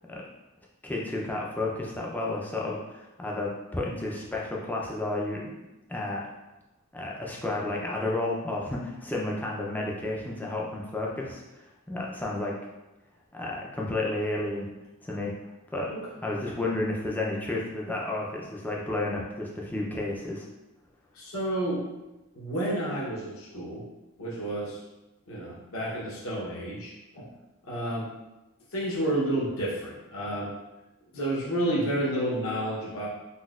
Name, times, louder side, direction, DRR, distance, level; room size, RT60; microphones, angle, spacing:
voice 1, 0.8-5.5 5.9-6.2 6.9-12.6 13.3-14.7 15.0-15.3 15.7-15.9 16.2-20.5, left 2 dB, 10° left, -3 dB, 0.4 m, -31 dB
voice 2, 21.1-21.9 22.3-23.8 24.2-24.8 25.3-27.3 27.6-28.1 28.7-30.5 31.1-33.1, right 1 dB, 65° left, -6 dB, 0.8 m, -30 dB
4.0 x 2.1 x 2.3 m, 1.0 s
head